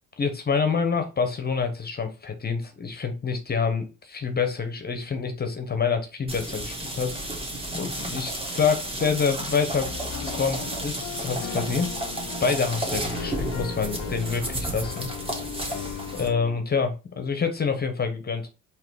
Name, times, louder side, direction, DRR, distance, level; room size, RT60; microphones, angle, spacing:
voice 1, 0.2-7.1 7.7-9.9 10.2-11.9 12.4-15.1 16.1-18.5, left 5 dB, 30° left, 7 dB, 0.8 m, -27 dB
sound 1, 6.3-16.3, right 1 dB, 20° right, 1.4 m, -32 dB
Piano, 9.7-16.6, left 12 dB, 75° left, 0.5 m, -38 dB
3.8 x 3.0 x 4.6 m, 0.30 s
cardioid pair, 90°, 30 cm